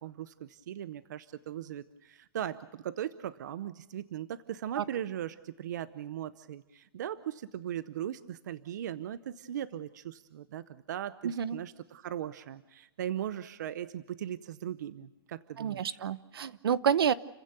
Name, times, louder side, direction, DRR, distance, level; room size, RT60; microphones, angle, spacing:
voice 1, 0.0-16.0, right 10 dB, 45° right, 15 dB, 0.7 m, -39 dB
voice 2, 11.2-11.6 15.6-17.1, right 8 dB, 70° right, 16 dB, 1.0 m, -29 dB
30.0 x 15.5 x 6.9 m, 1.0 s
hypercardioid pair, 175°, 13 cm